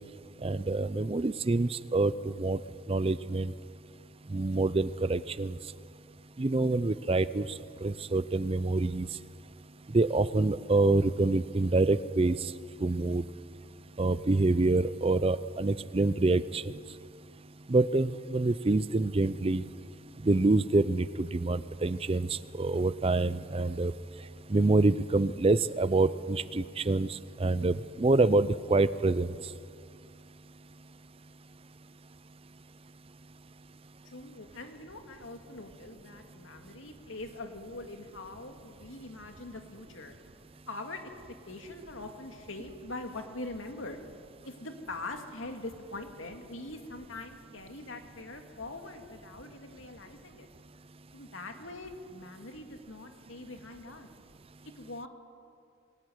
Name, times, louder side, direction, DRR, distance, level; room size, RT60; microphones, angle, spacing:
voice 1, 0.4-2.6 2.9-3.5 4.3-5.6 6.4-7.5 7.8-9.1 9.9-12.4 12.8-13.2 14.0-16.7 17.7-19.7 20.2-23.9 24.5-29.3, right 2 dB, 30° right, 16 dB, 0.5 m, -26 dB
voice 2, 34.0-40.2 40.7-41.0 41.5-44.0 44.4-50.5 51.1-54.1 54.7-55.1, left 2 dB, 75° left, 5 dB, 2.4 m, -43 dB
22.0 x 17.0 x 9.4 m, 2.3 s
head